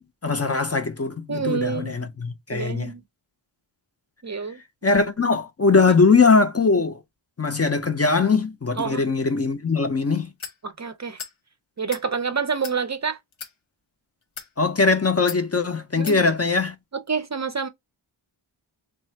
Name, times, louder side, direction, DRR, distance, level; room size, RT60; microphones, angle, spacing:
voice 1, 0.2-2.9 4.8-7.0 7.4-10.3 14.6-16.8, left 4 dB, 30° left, 0.5 m, -21 dB
voice 2, 1.3-2.0 2.5-3.0 4.2-4.6 8.8-9.0 10.6-11.2 11.8-13.2 16.0-16.2 16.9-17.7, right 5 dB, 35° right, 0.5 m, -28 dB
sound 1, 10.4-10.6 11.2-11.4 11.8-12.1 12.6-12.8 13.3-13.5 14.2-14.5 15.3-15.4 16.1-16.2, left 6 dB, 75° left, 1.0 m, -36 dB
3.2 x 2.4 x 4.4 m
wide cardioid pair, 80°, 48 cm